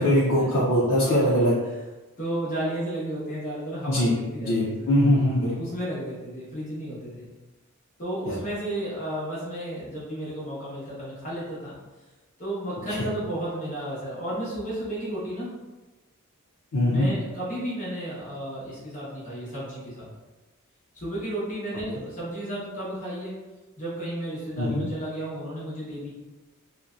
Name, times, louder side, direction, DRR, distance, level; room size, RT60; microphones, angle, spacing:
voice 1, 0.0-1.5 3.9-4.1 4.4-5.5 8.3-8.4 16.7-17.1 21.9-22.0 24.6-24.9, equal, 80° left, -6 dB, 0.5 m, -22 dB
voice 2, 1.0-1.3 2.2-4.9 5.6-7.3 8.0-11.7 12.4-15.5 16.9-20.1 20.9-23.4 23.8-26.1, right 1 dB, 35° left, -8 dB, 0.9 m, -33 dB
2.6 x 2.1 x 2.4 m, 1.1 s
head